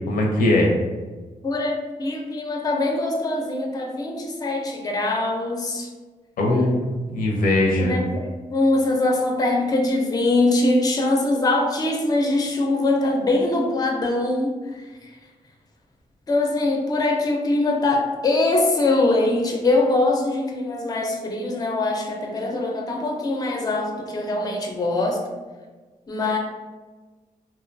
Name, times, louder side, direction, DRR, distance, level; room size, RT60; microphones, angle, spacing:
voice 1, 0.1-0.7 6.4-8.0, left 1 dB, 90° left, -1 dB, 0.6 m, -20 dB
voice 2, 1.4-5.9 7.8-15.1 16.3-25.2 26.1-26.4, left 2 dB, 25° left, 1 dB, 0.4 m, -22 dB
2.6 x 2.2 x 2.5 m, 1.3 s
cardioid pair, 105°, 14 cm